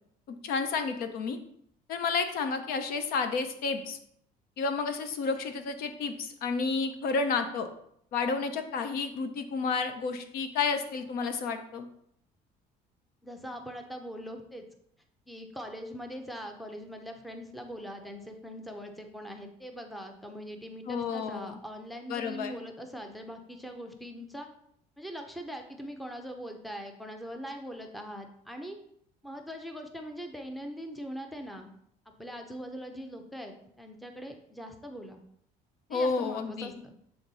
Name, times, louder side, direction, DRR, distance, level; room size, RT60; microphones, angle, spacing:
voice 1, 0.3-1.4 1.9-4.0 4.6-7.7 8.1-11.9 20.9-21.6 22.1-22.6 35.9-36.7, left 4 dB, 65° left, 8 dB, 0.8 m, -31 dB
voice 2, 13.2-14.7 15.3-24.5 25.0-28.8 29.2-31.7 32.2-35.2 35.9-36.9, equal, ahead, 4 dB, 0.6 m, -42 dB
7.8 x 3.7 x 4.0 m, 0.70 s
cardioid pair, 145°, 17 cm